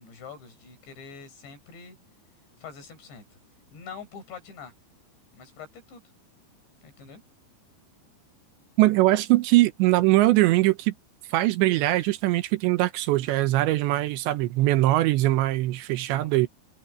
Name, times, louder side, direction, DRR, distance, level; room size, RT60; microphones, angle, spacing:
voice 1, 0.0-2.0 2.6-3.4 3.7-4.7 5.3-6.0 6.8-7.2 16.1-16.5, left 5 dB, 65° left, 7.3 m, -44 dB
voice 2, 8.8-10.9 11.3-16.5, right 17 dB, 75° right, 2.9 m, -21 dB
omnidirectional pair, 5.5 m